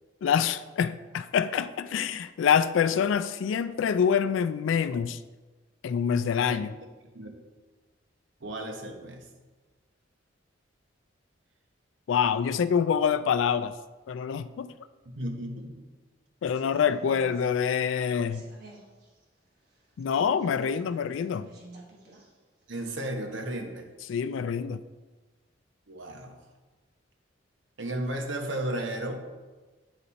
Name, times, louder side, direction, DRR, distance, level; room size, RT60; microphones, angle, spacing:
voice 1, 0.2-5.2 5.8-6.7 12.1-13.7 14.1-14.7 16.4-18.4 20.0-21.5 24.1-24.8, left 7 dB, 80° left, 0.3 m, -26 dB
voice 2, 8.4-9.3 15.2-15.8 22.7-23.9 25.9-26.4 27.8-29.3, right 1 dB, 75° right, 0.9 m, -34 dB
sound 1, 16.5-22.3 22.6-22.7, right 2 dB, 55° right, 1.4 m, -50 dB
8.4 x 4.0 x 4.1 m
head